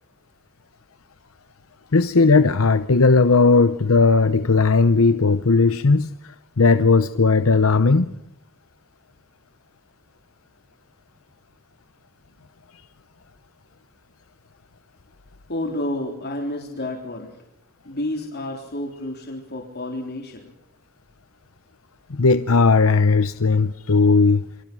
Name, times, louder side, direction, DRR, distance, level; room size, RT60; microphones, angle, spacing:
voice 1, 1.9-8.1 22.1-24.4, left 4 dB, 75° left, 0.9 m, -17 dB
voice 2, 15.5-17.4 17.9-20.5, left 1 dB, 50° left, 3.8 m, -30 dB
28.5 x 25.0 x 6.2 m
head